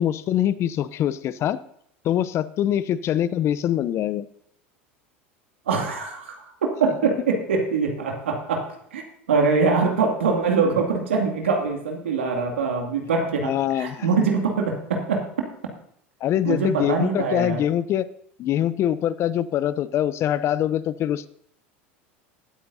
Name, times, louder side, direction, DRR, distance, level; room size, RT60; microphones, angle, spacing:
voice 1, 0.0-1.6 2.0-4.3 13.4-14.1 16.2-18.1 18.4-21.3, left 11 dB, 45° left, 16 dB, 0.6 m, -24 dB
voice 2, 5.7-6.4 6.8-8.7 8.9-15.2 16.4-17.6, right 4 dB, 85° right, 2 dB, 2.4 m, -23 dB
19.5 x 8.7 x 2.7 m, 0.69 s
hypercardioid pair, 85°, 6 cm